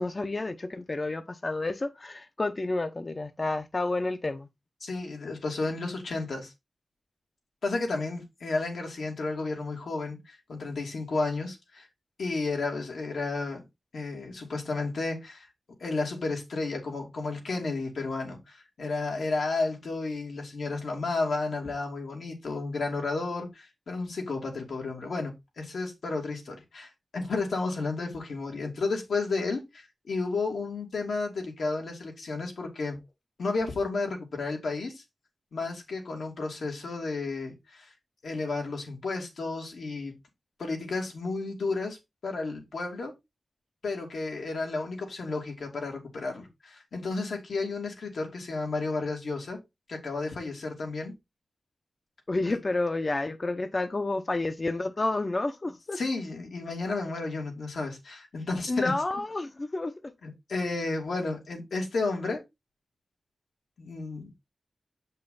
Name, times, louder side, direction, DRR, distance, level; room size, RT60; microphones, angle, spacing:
voice 1, 0.0-4.5 52.3-56.0 58.7-60.1, left 2 dB, 35° left, 0.7 m, -30 dB
voice 2, 4.8-6.5 7.6-11.9 12.2-13.6 13.9-15.5 15.8-33.0 33.4-35.0 35.5-37.9 38.2-40.1 40.6-42.0 42.2-43.1 43.8-49.6 49.9-51.1 52.5-52.6 55.9-58.9 60.2-62.4 63.8-64.3, left 3 dB, 85° left, 2.8 m, -32 dB
7.9 x 5.5 x 3.9 m
wide cardioid pair, 95°, 0 cm